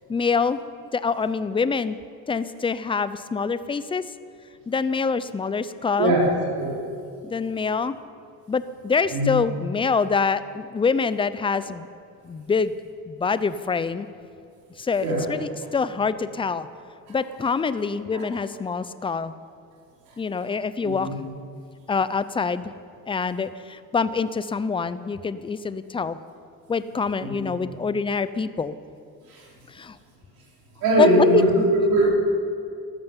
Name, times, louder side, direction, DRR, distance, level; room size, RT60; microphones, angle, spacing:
voice 1, 0.1-0.6 0.9-2.0 2.3-4.0 4.7-6.1 7.2-8.0 8.5-11.9 12.2-12.7 13.1-14.1 14.8-16.7 17.1-19.3 20.2-21.1 21.9-22.7 23.1-26.2 26.7-28.8 29.7-30.0 31.0-31.4, left 5 dB, 15° left, 14 dB, 0.5 m, -25 dB
voice 2, 6.0-6.8 9.1-9.4 15.0-15.2 18.1-18.2 20.8-21.1 27.3-27.5 29.3-29.4 30.8-32.1, right 1 dB, 75° right, -3 dB, 4.4 m, -21 dB
13.5 x 12.0 x 7.4 m, 2.4 s
cardioid pair, 120°, 36 cm